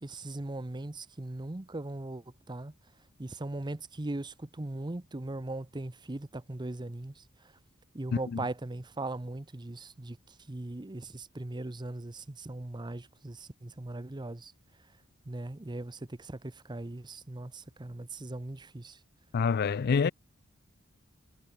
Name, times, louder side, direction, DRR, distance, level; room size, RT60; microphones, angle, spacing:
voice 1, 0.0-2.7 3.2-7.2 7.9-10.2 10.5-14.5 15.3-19.0, right 2 dB, 20° right, 0.7 m, -39 dB
voice 2, 19.3-20.1, left 5 dB, 50° left, 0.4 m, -27 dB
head